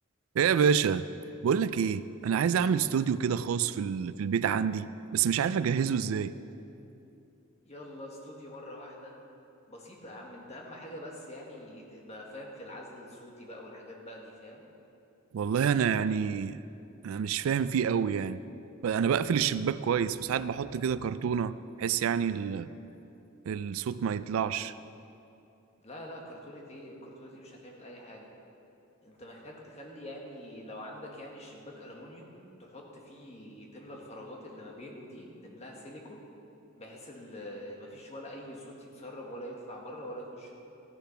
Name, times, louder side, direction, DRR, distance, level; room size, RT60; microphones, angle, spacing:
voice 1, 0.4-1.0 1.4-6.3 15.3-16.6 17.0-18.4 18.8-22.7 23.5-24.7, right 7 dB, 85° right, 15 dB, 0.3 m, -28 dB
voice 2, 7.6-9.2 9.7-14.6 25.8-28.3 29.0-36.2 36.8-40.5, left 1 dB, 30° left, -1 dB, 1.6 m, -45 dB
14.5 x 6.9 x 5.7 m, 2.8 s
head